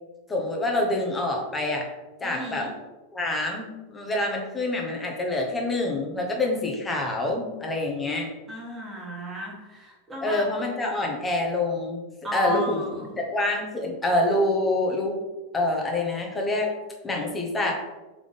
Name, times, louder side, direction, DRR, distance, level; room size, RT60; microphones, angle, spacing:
voice 1, 0.3-1.9 2.2-2.7 3.1-8.3 10.2-12.0 12.3-12.8 13.2-15.1 15.5-16.7 17.0-17.7, left 2 dB, 15° left, 0 dB, 0.9 m, -26 dB
voice 2, 2.2-2.7 8.5-10.5 12.2-13.1, equal, 15° right, -3 dB, 1.4 m, -35 dB
3.6 x 3.4 x 3.8 m, 1.1 s
supercardioid pair, 135°, 0 cm